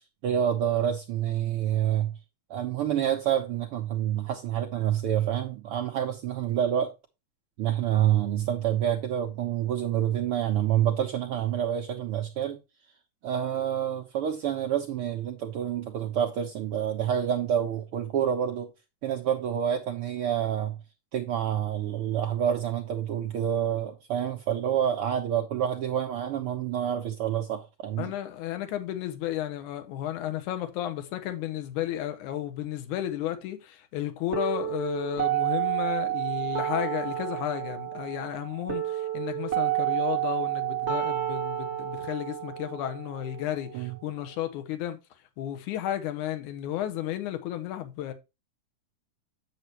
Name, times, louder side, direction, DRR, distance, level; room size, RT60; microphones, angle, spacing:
voice 1, 0.2-2.1 2.5-6.9 7.6-12.6 13.2-18.7 19.0-20.8 21.1-28.1 43.7-43.9, right 10 dB, 85° right, 1.2 m, -28 dB
voice 2, 28.0-45.0 45.4-48.1, left 12 dB, 80° left, 2.4 m, -33 dB
sound 1, 34.3-44.3, right 14 dB, 35° right, 1.1 m, -30 dB
8.9 x 6.7 x 3.0 m
omnidirectional pair, 3.6 m